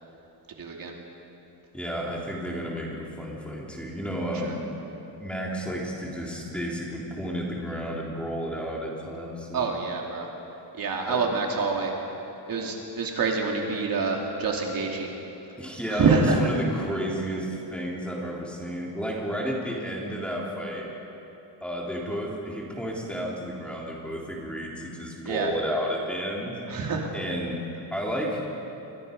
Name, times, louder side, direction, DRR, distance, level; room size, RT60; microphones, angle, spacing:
voice 1, 0.6-0.9 4.4-4.5 9.5-10.3 10.8-11.9 12.5-15.1 15.9-16.4 25.2-25.5 26.7-27.1, right 4 dB, 50° right, 0 dB, 2.6 m, -26 dB
voice 2, 1.7-4.6 5.2-9.6 11.1-11.2 15.6-20.9 21.6-26.6 27.1-27.6 27.9-28.4, equal, 5° left, -3 dB, 3.3 m, -32 dB
28.5 x 23.0 x 5.3 m, 3.0 s
cardioid pair, 175°, 44 cm